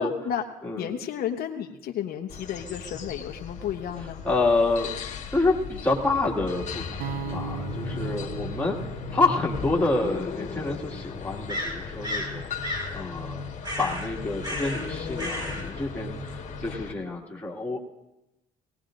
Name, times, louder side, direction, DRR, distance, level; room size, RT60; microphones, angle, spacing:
voice 1, 0.0-0.4 0.8-4.2, left 9 dB, 65° left, 4 dB, 0.9 m, -32 dB
sound 1, 2.3-16.9, left 5 dB, 45° left, 1.5 m, -36 dB
voice 2, 4.2-4.9 5.3-8.8 9.1-13.4 13.8-17.8, left 3 dB, 10° left, -3 dB, 2.1 m, -28 dB
sound 2, 7.0-11.1, right 7 dB, 60° right, 0.6 m, -38 dB
sound 3, 11.5-12.3 12.6-12.9 13.6-14.1 14.4-14.9 15.2-15.6, equal, 25° right, 3.1 m, -32 dB
20.5 x 18.0 x 2.6 m, 0.96 s
cardioid pair, 110°, 17 cm